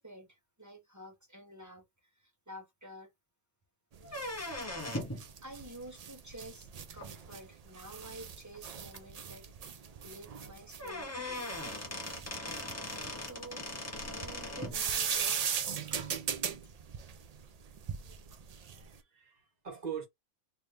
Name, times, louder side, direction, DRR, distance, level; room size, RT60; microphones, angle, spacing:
voice 1, 0.0-1.8 2.2-3.1 4.6-4.7 5.1-11.5 13.1-13.7 14.0-16.2, right 1 dB, 15° right, 0.9 m, -50 dB
sound 1, 3.9-19.0, right 7 dB, 65° right, 0.3 m, -39 dB
sound 2, 4.0-5.2 7.0-7.1 8.0-8.1 8.5-8.6 8.9-9.0 10.4-10.5 10.8-14.8, left 1 dB, 15° left, 0.6 m, -39 dB
voice 2, 18.6-20.1, right 7 dB, 35° right, 1.1 m, -42 dB
3.4 x 2.9 x 2.6 m
omnidirectional pair, 1.3 m